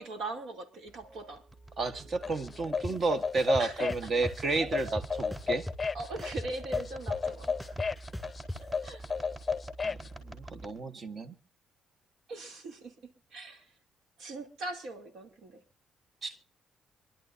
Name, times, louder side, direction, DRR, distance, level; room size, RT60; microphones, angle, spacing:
voice 1, 0.0-1.4 3.6-3.9 5.9-7.8 8.6-9.1 12.3-12.9 13.3-13.7 14.2-15.6, right 2 dB, 75° right, 2.9 m, -40 dB
sound 1, 0.9-10.7, right 2 dB, 30° right, 4.2 m, -47 dB
voice 2, 1.8-5.7 9.8-10.0 10.2-11.4 16.2-16.4, right 3 dB, 50° right, 1.4 m, -31 dB
sound 2, 2.2-10.1, left 5 dB, 30° left, 0.6 m, -34 dB
sound 3, 2.8-2.9 3.4-4.3 4.8-5.9 6.2-8.6, left 1 dB, 5° right, 2.6 m, -38 dB
26.0 x 11.5 x 2.7 m
cardioid pair, 90°, 0 cm